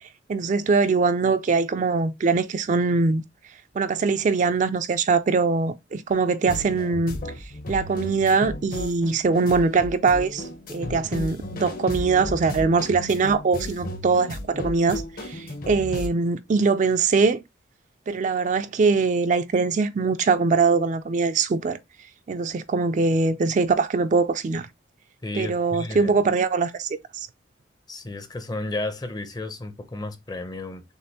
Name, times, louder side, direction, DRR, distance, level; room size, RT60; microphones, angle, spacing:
voice 1, 0.0-3.2 3.8-7.2 7.7-17.4 18.1-21.8 22.3-24.7 25.3-27.3, right 4 dB, 40° right, 0.3 m, -22 dB
sound 1, 6.5-16.1, left 1 dB, 50° left, 0.8 m, -34 dB
voice 2, 25.2-26.1 27.9-30.8, left 2 dB, 20° left, 0.6 m, -33 dB
6.6 x 2.5 x 2.8 m
head